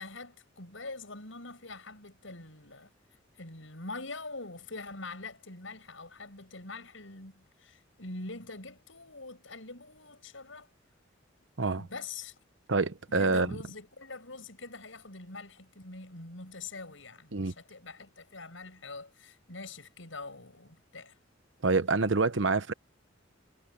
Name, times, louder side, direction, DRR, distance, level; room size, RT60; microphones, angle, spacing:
voice 1, 0.0-2.9 3.4-10.7 11.8-12.4 13.1-21.2, left 3 dB, 80° left, 7.5 m, -44 dB
voice 2, 12.7-13.5 17.3-17.5 21.6-22.7, right 3 dB, 70° right, 1.0 m, -26 dB
head